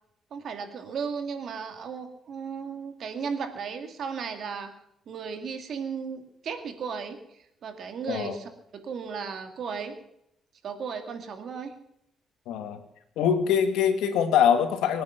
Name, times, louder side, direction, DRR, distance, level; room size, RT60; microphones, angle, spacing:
voice 1, 0.3-4.7 5.1-10.0 10.6-11.7, right 6 dB, 65° right, 6 dB, 2.6 m, -35 dB
voice 2, 12.5-12.8 13.2-15.0, left 8 dB, 90° left, 7 dB, 2.2 m, -23 dB
24.0 x 9.5 x 6.0 m, 0.79 s
cardioid pair, 90°, 0 cm